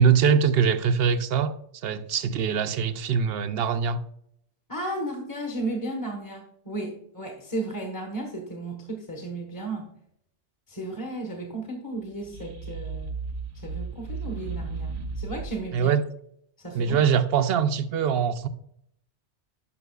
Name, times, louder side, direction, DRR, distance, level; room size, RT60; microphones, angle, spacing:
voice 1, 0.0-1.5 1.8-4.0 15.7-16.0 16.7-18.5, right 7 dB, 65° right, 0.7 m, -22 dB
voice 2, 4.7-9.9 10.7-13.2 13.5-15.9 16.6-17.0, right 2 dB, 20° left, 1.2 m, -34 dB
sound 1, 12.1-15.7, right 4 dB, 90° right, 1.2 m, -35 dB
11.0 x 5.7 x 2.3 m
omnidirectional pair, 1.2 m